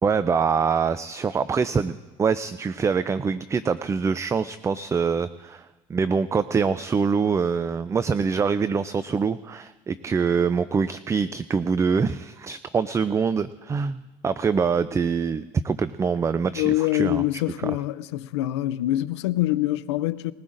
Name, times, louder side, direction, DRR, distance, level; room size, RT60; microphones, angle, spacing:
voice 1, 0.0-17.2, right 5 dB, 20° right, 0.4 m, -24 dB
voice 2, 16.5-20.3, left 16 dB, 90° left, 0.5 m, -25 dB
20.5 x 17.0 x 2.6 m
supercardioid pair, 90°, 14 cm